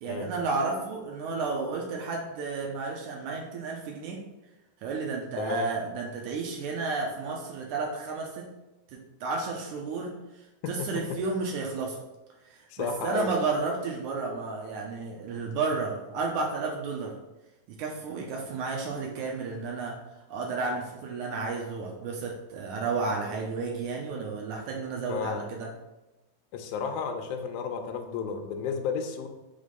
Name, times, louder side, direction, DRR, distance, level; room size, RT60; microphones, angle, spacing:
voice 1, 0.0-4.2 4.8-8.5 8.9-12.0 12.5-17.2 17.7-20.0 20.3-25.7, right 4 dB, 85° right, 0 dB, 1.8 m, -32 dB
voice 2, 5.4-5.7 10.6-10.9 12.7-13.3 25.1-25.4 26.5-29.3, left 6 dB, 90° left, 4 dB, 1.7 m, -32 dB
5.4 x 3.5 x 5.2 m, 1.0 s
omnidirectional pair, 4.3 m